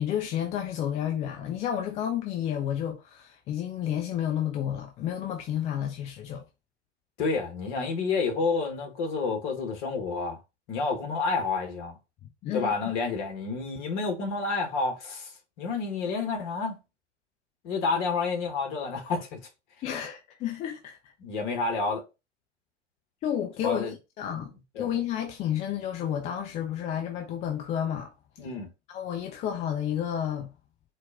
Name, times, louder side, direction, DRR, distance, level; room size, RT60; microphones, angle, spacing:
voice 1, 0.0-6.4 12.4-12.7 19.8-21.1 23.2-24.5 24.8-28.1 28.9-30.5, left 10 dB, 20° left, 0.5 m, -31 dB
voice 2, 7.2-10.4 10.7-12.0 12.5-15.3 15.6-16.7 17.6-19.5 21.2-22.0 23.6-23.9 24.7-24.9 28.4-28.7, left 4 dB, 40° left, 1.4 m, -29 dB
4.4 x 2.4 x 3.6 m
figure-of-eight pair, 95°, 36 cm